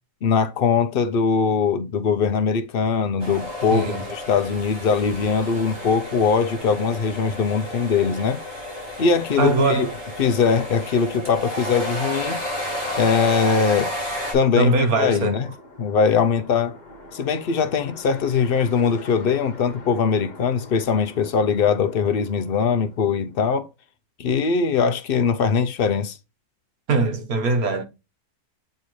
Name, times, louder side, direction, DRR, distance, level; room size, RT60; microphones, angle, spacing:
voice 1, 0.2-8.4 9.0-9.9 10.2-12.4 13.0-13.9 14.3-15.5 15.8-16.8 17.1-23.7 24.2-26.2, left 5 dB, 80° left, 0.5 m, -21 dB
sound 1, 3.2-14.3, left 1 dB, 20° right, 4.4 m, -32 dB
voice 2, 3.7-4.0 9.4-9.9 14.6-15.4 26.9-27.8, right 3 dB, 65° right, 1.7 m, -21 dB
sound 2, 14.5-23.4, left 1 dB, 30° left, 1.2 m, -44 dB
8.3 x 4.3 x 3.1 m
omnidirectional pair, 1.7 m